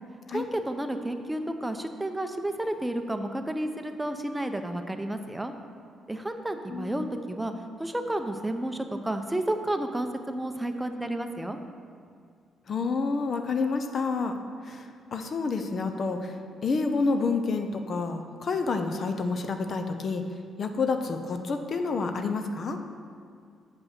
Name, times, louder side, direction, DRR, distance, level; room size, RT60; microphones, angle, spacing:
voice 1, 0.3-5.5 6.1-7.5 7.8-11.6, right 1 dB, 10° right, 6 dB, 0.6 m, -31 dB
voice 2, 6.7-7.1 12.7-14.4 14.6-16.4 16.6-20.2 20.6-22.8, left 4 dB, 50° left, 6 dB, 0.6 m, -29 dB
7.6 x 5.1 x 5.8 m, 2.2 s
cardioid pair, 90°, 0 cm